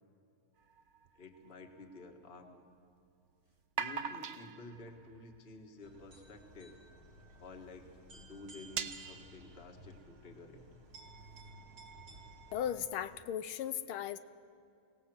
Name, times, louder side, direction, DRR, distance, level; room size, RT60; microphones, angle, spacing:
sound 1, 0.6-2.2 3.6-6.4 7.1-7.2 7.5-7.6 8.0-8.1 8.5-10.0, right 7 dB, 90° right, 0.6 m, -43 dB
voice 1, 1.1-2.6 3.8-6.8 7.3-10.6, left 2 dB, 30° left, 3 dB, 1.8 m, -51 dB
sound 2, 5.8-13.3, right 1 dB, 70° right, 4.8 m, -56 dB
voice 2, 12.5-14.2, left 10 dB, 75° left, 13 dB, 1.5 m, -37 dB
23.5 x 18.0 x 7.8 m, 2.5 s
omnidirectional pair, 2.4 m